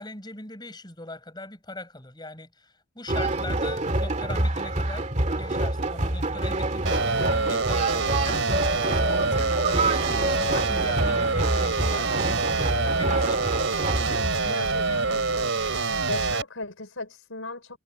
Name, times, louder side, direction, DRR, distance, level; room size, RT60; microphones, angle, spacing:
voice 1, 0.0-5.1 5.4-13.7 14.4-15.5, left 2 dB, 20° left, 7.8 m, -41 dB
sound 1, 3.1-14.3, right 2 dB, 35° right, 2.2 m, -27 dB
sound 2, 6.9-16.4, right 3 dB, 65° right, 4.5 m, -26 dB
voice 2, 14.4-15.5 16.1-17.8, left 2 dB, 75° left, 4.0 m, -37 dB
head